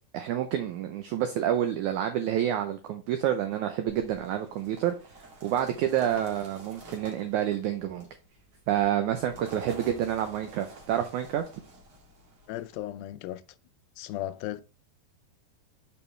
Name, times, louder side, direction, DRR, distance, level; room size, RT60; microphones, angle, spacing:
voice 1, 0.1-8.1 8.7-11.5, right 10 dB, 90° right, 1.7 m, -28 dB
sound 1, 3.9-12.8, right 2 dB, 50° right, 1.7 m, -49 dB
voice 2, 12.5-13.4 14.0-14.6, left 14 dB, 85° left, 2.3 m, -35 dB
6.5 x 5.5 x 3.2 m
omnidirectional pair, 4.2 m